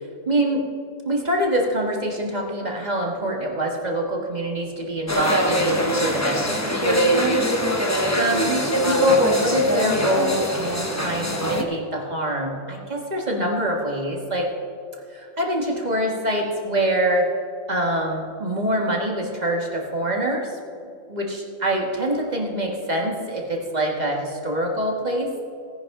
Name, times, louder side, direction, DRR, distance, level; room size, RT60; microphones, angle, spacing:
voice 1, 0.3-0.6 1.1-7.4 7.7-14.5 15.1-17.3 17.7-20.6 21.1-25.4, right 1 dB, 30° right, 0 dB, 1.6 m, -25 dB
sound 1, 5.1-11.6, equal, 15° left, 0.7 m, -23 dB
17.5 x 10.0 x 3.7 m, 2.5 s
omnidirectional pair, 1.5 m